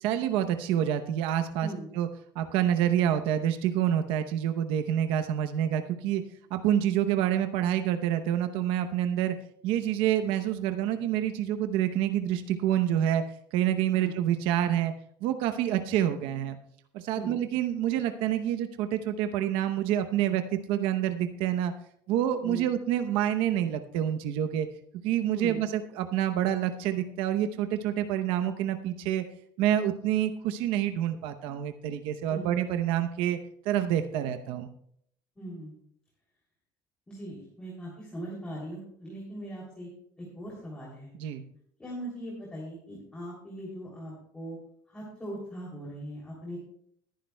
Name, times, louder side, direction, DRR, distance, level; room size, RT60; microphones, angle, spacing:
voice 1, 0.0-1.7 1.9-2.1 2.3-6.2 6.5-9.3 9.6-13.2 13.5-14.9 15.2-16.6 16.9-20.4 20.7-21.7 22.1-24.7 25.0-29.2 29.6-33.4 33.6-34.7 41.2-41.4, right 11 dB, 80° right, 8 dB, 0.8 m, -27 dB
voice 2, 35.4-35.8 37.1-39.9 40.2-41.1 41.8-44.6 44.9-46.6, right 1 dB, 10° left, -5 dB, 3.0 m, -40 dB
20.5 x 10.5 x 2.3 m, 0.67 s
cardioid pair, 170°, 9 cm